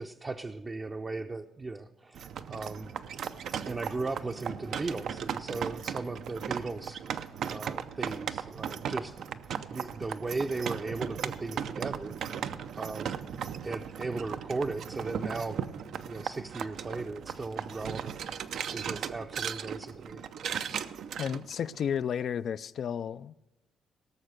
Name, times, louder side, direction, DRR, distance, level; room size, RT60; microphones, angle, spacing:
voice 1, 0.0-2.2 2.5-3.0 3.6-7.0 7.5-9.3 9.7-12.2 12.8-13.3 13.6-18.2 18.7-20.2, right 3 dB, 30° right, 0.6 m, -37 dB
sound 1, 2.2-22.0, right 8 dB, 70° right, 0.6 m, -37 dB
voice 2, 21.2-23.3, left 8 dB, 60° left, 0.3 m, -32 dB
17.5 x 6.6 x 6.5 m
cardioid pair, 90°, 0 cm